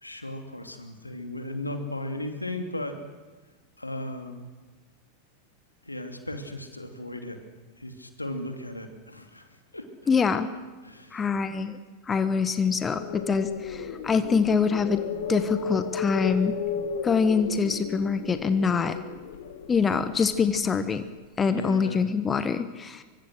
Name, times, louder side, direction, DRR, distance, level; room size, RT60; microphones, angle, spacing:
voice 1, 0.0-2.9 3.8-4.5 5.9-7.4 7.8-9.5 9.7-9.8 10.8-11.2 21.4-22.0, left 1 dB, 85° left, 5 dB, 2.8 m, -36 dB
voice 2, 10.1-10.5 11.1-11.8 12.1-15.0 15.3-16.5 17.0-19.0 19.7-21.0 21.4-23.0, left 5 dB, 20° left, 11 dB, 1.4 m, -24 dB
sound 1, 12.8-20.9, left 7 dB, 55° left, 2.2 m, -34 dB
24.0 x 24.0 x 6.5 m, 1.3 s
figure-of-eight pair, 90°, 0 cm